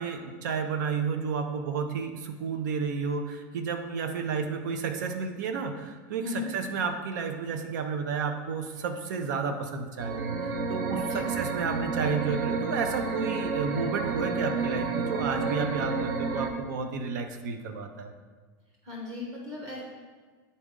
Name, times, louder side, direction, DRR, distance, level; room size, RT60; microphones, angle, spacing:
voice 1, 0.0-18.1, right 5 dB, 90° right, 6 dB, 0.7 m, -31 dB
voice 2, 6.2-6.5 11.0-11.3 18.8-19.8, left 4 dB, 35° right, -2 dB, 1.1 m, -37 dB
sound 1, 10.0-16.5, right 4 dB, 55° right, 0.7 m, -30 dB
9.5 x 4.1 x 3.7 m, 1.4 s
supercardioid pair, 160°, 10 cm